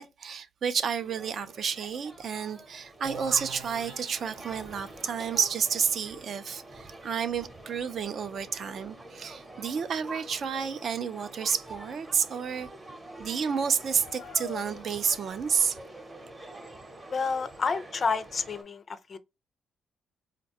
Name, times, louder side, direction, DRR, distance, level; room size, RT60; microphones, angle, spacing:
voice 1, 0.0-12.7 13.2-15.8, right 7 dB, 55° right, 0.4 m, -30 dB
sound 1, 1.0-18.6, right 2 dB, 25° right, 0.7 m, -47 dB
sound 2, 3.0-8.6, right 4 dB, 90° right, 0.9 m, -46 dB
sound 3, 11.7-11.8 12.3-12.6 12.8-12.9 13.7-15.3, left 7 dB, 80° left, 0.6 m, -46 dB
voice 2, 17.1-19.2, left 5 dB, 40° left, 0.4 m, -30 dB
3.8 x 2.1 x 2.8 m
cardioid pair, 90°, 0 cm